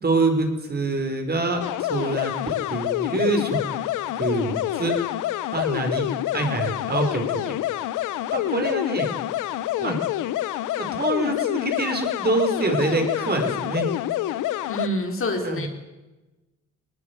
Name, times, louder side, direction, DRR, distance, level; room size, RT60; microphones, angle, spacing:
voice 1, 0.0-3.6 4.1-5.0 5.5-6.1 6.3-7.6 8.3-9.1 9.8-10.0 10.8-13.9 15.4-15.7, right 2 dB, 30° right, 5 dB, 5.3 m, -25 dB
sound 1, 1.6-14.9, left 14 dB, 90° left, 1.1 m, -27 dB
voice 2, 14.7-15.7, left 1 dB, 45° left, 4 dB, 4.4 m, -27 dB
20.0 x 19.5 x 9.6 m, 1.1 s
cardioid pair, 90°, 30 cm